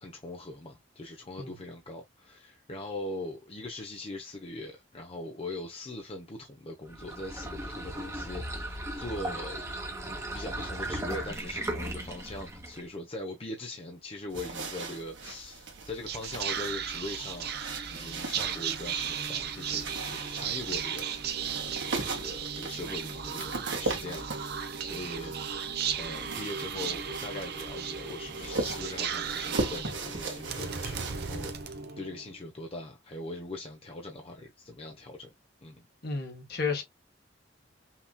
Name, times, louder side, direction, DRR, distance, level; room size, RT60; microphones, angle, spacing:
voice 1, 0.0-9.6 10.3-17.6 17.9-21.1 21.5-25.3 26.0-35.3 35.6-35.9, left 2 dB, 30° left, 0.8 m, -41 dB
sound 1, 6.9-12.9, right 1 dB, 15° right, 1.1 m, -37 dB
sound 2, 14.3-31.5, right 3 dB, 90° right, 1.7 m, -39 dB
Whispering, 15.7-32.3, right 7 dB, 60° right, 0.8 m, -36 dB
voice 2, 36.0-36.8, left 4 dB, 60° left, 1.6 m, -32 dB
5.8 x 3.0 x 2.2 m
head